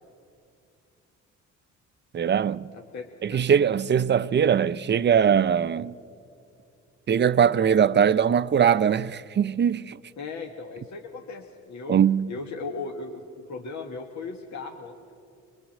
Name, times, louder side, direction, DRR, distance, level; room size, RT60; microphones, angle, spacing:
voice 1, 2.1-2.7 3.2-5.9 7.1-10.0 11.9-12.3, right 8 dB, 35° right, 0.5 m, -21 dB
voice 2, 2.7-3.4 10.2-12.0 12.3-14.9, left 4 dB, 65° left, 1.4 m, -37 dB
23.5 x 21.0 x 7.3 m
cardioid pair, 90°, 30 cm